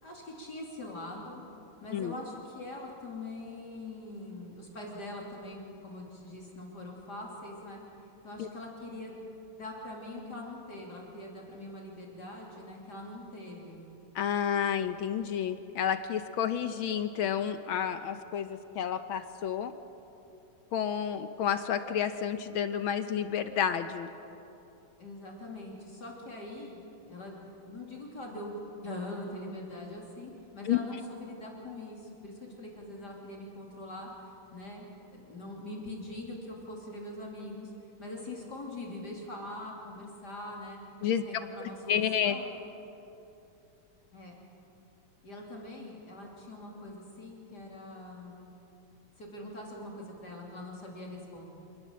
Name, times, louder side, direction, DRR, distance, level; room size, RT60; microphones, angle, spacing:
voice 1, 0.0-1.4 1.8-7.8 8.2-9.2 9.6-13.8 25.0-26.8 27.1-28.6 28.8-37.7 38.0-40.8 41.1-42.5 44.1-44.4 45.2-48.5 49.2-51.4, left 1 dB, 50° left, -2 dB, 3.6 m, -43 dB
voice 2, 14.1-19.7 20.7-24.1 30.7-30.8 41.0-41.2 41.9-42.4, left 8 dB, 70° left, 9 dB, 1.6 m, -30 dB
27.5 x 19.5 x 7.5 m, 2.9 s
omnidirectional pair, 2.4 m